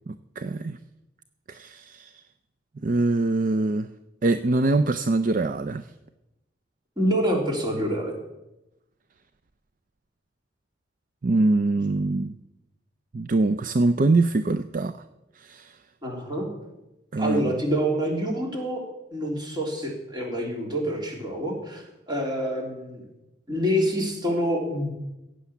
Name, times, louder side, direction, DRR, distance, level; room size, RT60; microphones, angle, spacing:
voice 1, 0.1-0.8 1.5-2.1 2.8-3.9 4.2-5.9 11.2-12.4 13.1-15.0 15.4-15.7 17.1-17.6, right 2 dB, 50° right, 10 dB, 0.5 m, -23 dB
voice 2, 7.0-8.1 16.0-16.5 17.2-18.8 19.1-23.0 23.5-24.9, equal, 25° right, 0 dB, 3.3 m, -27 dB
15.5 x 8.6 x 7.1 m, 0.96 s
head